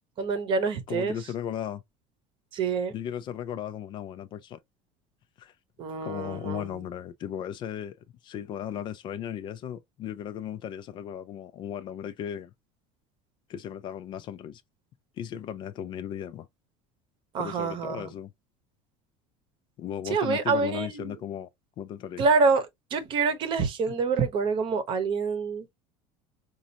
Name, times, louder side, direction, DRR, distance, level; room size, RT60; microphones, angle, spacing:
voice 1, 0.2-1.2 2.5-2.9 5.8-6.7 17.3-18.1 20.1-21.2 22.2-22.7 22.9-25.7, right 4 dB, 35° right, 0.8 m, -26 dB
voice 2, 0.9-1.8 2.9-4.6 5.4-5.5 6.0-8.0 8.2-12.5 13.5-14.6 15.2-16.5 17.4-18.3 19.8-21.5 21.8-22.2 23.9-24.0, left 9 dB, 30° left, 0.3 m, -36 dB
5.2 x 2.5 x 2.7 m
cardioid pair, 170°, 15 cm